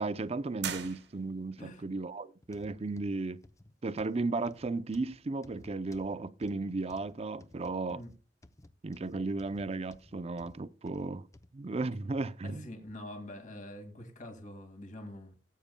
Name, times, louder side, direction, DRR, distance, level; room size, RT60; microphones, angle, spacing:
voice 1, 0.0-3.4 3.8-8.0 8.8-11.3 11.5-12.7, right 3 dB, 35° right, 0.5 m, -35 dB
sound 1, 0.6-1.6, right 8 dB, 75° right, 1.3 m, -40 dB
sound 2, 2.4-11.5 12.1-12.2 12.9-13.0, left 1 dB, 20° left, 0.6 m, -57 dB
voice 2, 12.4-15.3, left 1 dB, 45° left, 2.2 m, -45 dB
18.0 x 8.5 x 2.2 m
head